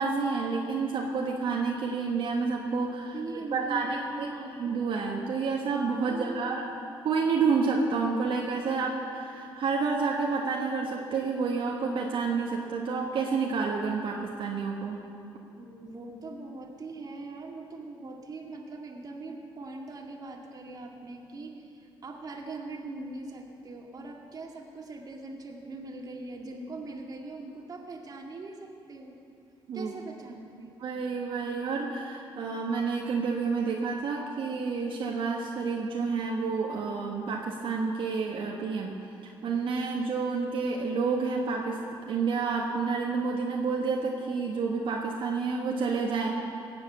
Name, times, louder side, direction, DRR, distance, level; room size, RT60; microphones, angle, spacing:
voice 1, 0.0-4.3 4.6-6.6 7.0-15.0 29.7-29.9 30.8-38.9 39.2-41.8 42.1-46.4, right 4 dB, 65° right, -1 dB, 1.4 m, -29 dB
voice 2, 3.1-4.7 6.0-6.6 15.6-29.2 29.7-30.7, right 2 dB, 40° right, 1 dB, 2.0 m, -41 dB
18.0 x 7.8 x 7.4 m, 2.5 s
cardioid pair, 90°, 9 cm